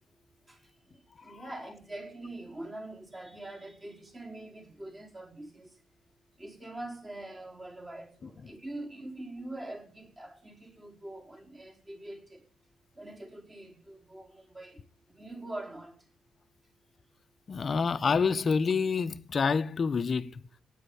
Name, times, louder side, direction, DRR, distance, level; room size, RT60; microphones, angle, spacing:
voice 1, 1.2-5.7 6.4-12.4 13.0-14.8 15.2-15.9, right 1 dB, 20° right, 4.9 m, -43 dB
voice 2, 17.5-20.4, left 5 dB, 40° left, 1.0 m, -28 dB
17.0 x 9.6 x 7.2 m
cardioid pair, 90°, 0 cm